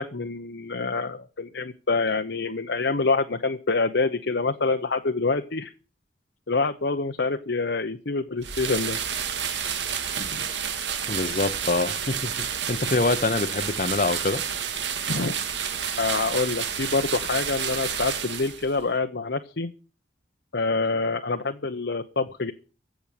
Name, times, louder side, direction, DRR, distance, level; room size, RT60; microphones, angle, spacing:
voice 1, 0.0-5.7 6.5-9.0 10.2-10.4 15.1-15.4 16.0-19.7 20.5-22.5, left 3 dB, 75° left, 0.9 m, -26 dB
sound 1, 8.4-18.8, right 8 dB, 80° right, 2.0 m, -30 dB
voice 2, 11.1-14.4, left 3 dB, 45° left, 0.8 m, -25 dB
15.5 x 6.2 x 9.1 m
head